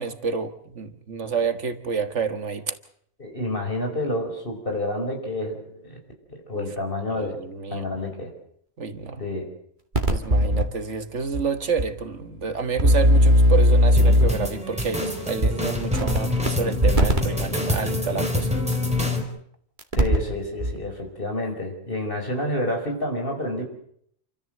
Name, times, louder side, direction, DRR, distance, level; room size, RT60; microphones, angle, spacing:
voice 1, 0.0-2.7 6.6-6.7 7.2-7.9 8.8-9.2 10.1-18.5, right 5 dB, 65° right, 10 dB, 1.8 m, -29 dB
voice 2, 3.2-6.0 6.3-7.4 7.7-8.3 9.2-9.5 20.0-23.7, left 1 dB, 45° left, 3 dB, 5.3 m, -29 dB
sound 1, 9.9-10.6 11.3-11.4 11.8-11.9 12.8-14.5 15.4-15.5 15.9-16.5 16.8-17.2 18.7-18.8 19.8-20.3 20.6-20.7, equal, 35° right, 2.4 m, -17 dB
sound 2, 14.0-19.2, left 2 dB, 5° right, 3.9 m, -26 dB
28.5 x 14.0 x 7.9 m, 0.68 s
omnidirectional pair, 1.3 m